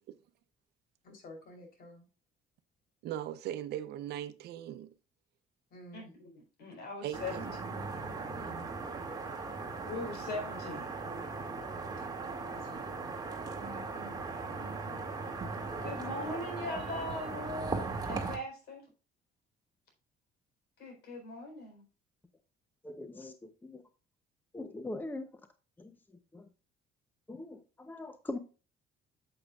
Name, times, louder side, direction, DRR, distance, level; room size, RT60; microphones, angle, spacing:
voice 1, 1.0-2.0 5.7-6.1 12.0-12.1 12.4-13.0, left 1 dB, 60° left, 3.5 m, -52 dB
voice 2, 3.0-4.9 7.0-7.6 15.8-16.0, right 12 dB, 75° right, 0.8 m, -39 dB
voice 3, 6.6-7.9 9.9-11.0 13.6-14.2 14.6-15.0 15.5-18.9 20.8-21.8, left 2 dB, 75° left, 4.2 m, -41 dB
sound 1, 7.1-18.4, right 4 dB, 25° right, 2.0 m, -38 dB
voice 4, 22.8-23.8 24.5-25.3 25.8-25.9 26.3-26.5 27.3-28.4, left 2 dB, 10° left, 0.8 m, -41 dB
8.6 x 7.9 x 2.4 m
cardioid pair, 110°, 17 cm